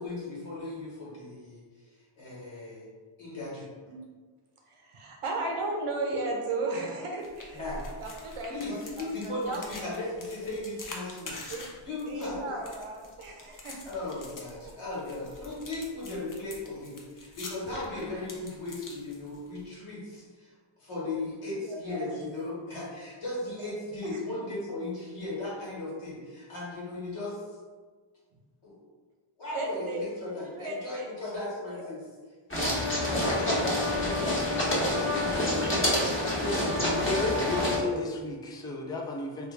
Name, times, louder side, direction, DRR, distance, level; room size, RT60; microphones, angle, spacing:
voice 1, 0.0-1.6 2.2-2.9 3.2-3.7 7.5-7.9 8.5-11.4 11.8-12.5 13.8-20.5 20.8-27.4 28.6-28.8 29.4-32.0 33.0-34.5 34.8-36.8 37.2-38.1, left 2 dB, 75° left, -6 dB, 1.4 m, -36 dB
voice 2, 4.7-8.8 9.2-9.6 9.9-10.0 11.5-11.7 12.1-13.8 14.0-14.1 14.6-14.7 15.1-15.3 17.4-17.5 21.9-22.2 23.6-23.7 24.1-24.5 29.5-30.1 30.5-31.0 31.7-31.9 33.2-33.6 35.0-35.5, right 2 dB, 85° right, 0 dB, 0.7 m, -35 dB
sound 1, 7.2-19.6, left 2 dB, 40° left, 0.6 m, -46 dB
sound 2, 32.5-37.8, left 1 dB, 25° left, 1.0 m, -27 dB
voice 3, 37.0-39.5, left 2 dB, 10° left, 1 dB, 0.3 m, -33 dB
3.1 x 2.3 x 3.2 m, 1.4 s
cardioid pair, 65°, 50 cm